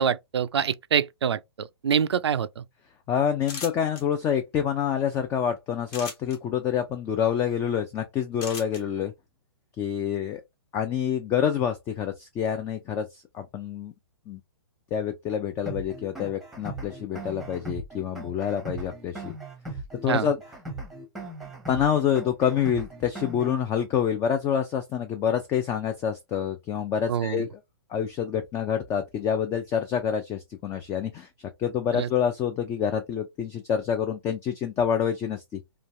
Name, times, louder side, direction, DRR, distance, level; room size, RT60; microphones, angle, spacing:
voice 1, 0.0-2.6 20.1-20.3 27.1-27.4 31.9-32.1, right 8 dB, 85° right, 0.4 m, -25 dB
voice 2, 3.1-9.1 9.8-10.4 10.7-13.9 14.3-14.4 14.9-19.3 20.0-20.4 21.7-27.6 27.9-31.3 31.6-35.6, left 8 dB, 20° left, 0.4 m, -27 dB
sound 1, 3.4-4.0 5.9-6.4 8.4-8.8, left 4 dB, 35° left, 1.0 m, -37 dB
sound 2, 15.7-23.7, right 2 dB, ahead, 0.8 m, -39 dB
3.1 x 2.3 x 2.5 m
hypercardioid pair, 130°, 13 cm